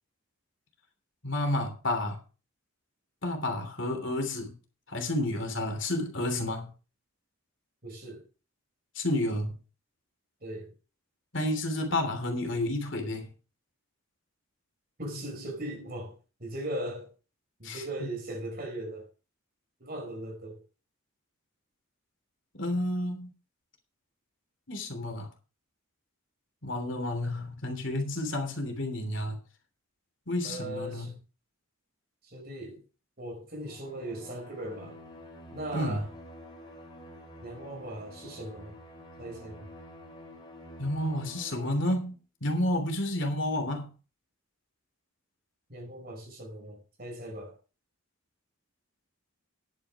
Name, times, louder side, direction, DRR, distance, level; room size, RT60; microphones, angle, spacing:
voice 1, 1.2-2.2 3.2-4.6 4.9-6.7 8.9-9.6 11.3-13.3 17.6-18.1 22.5-23.3 24.7-25.3 26.6-29.4 30.3-31.1 35.7-36.1 40.8-43.9, left 1 dB, 60° left, 3.1 m, -30 dB
voice 2, 7.8-8.2 10.4-10.7 15.0-17.1 17.6-19.1 19.8-20.6 30.4-31.1 32.2-32.8 33.2-35.0 35.5-36.1 37.4-38.8 39.2-39.7 45.7-47.6, right 1 dB, 45° right, 5.0 m, -39 dB
Bowed string instrument, 33.6-42.2, left 1 dB, 20° left, 4.5 m, -49 dB
10.5 x 9.2 x 4.8 m
head